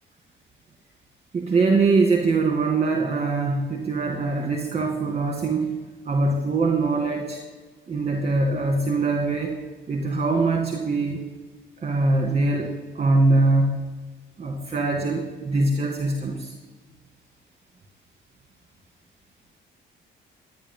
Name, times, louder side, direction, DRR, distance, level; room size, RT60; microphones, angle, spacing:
voice 1, 1.3-5.8 6.1-7.4 7.9-9.5 9.9-11.3 11.8-13.8 14.4-16.6, right 3 dB, 30° right, 1 dB, 2.2 m, -23 dB
13.5 x 9.8 x 5.7 m, 1.3 s
cardioid pair, 90°, 20 cm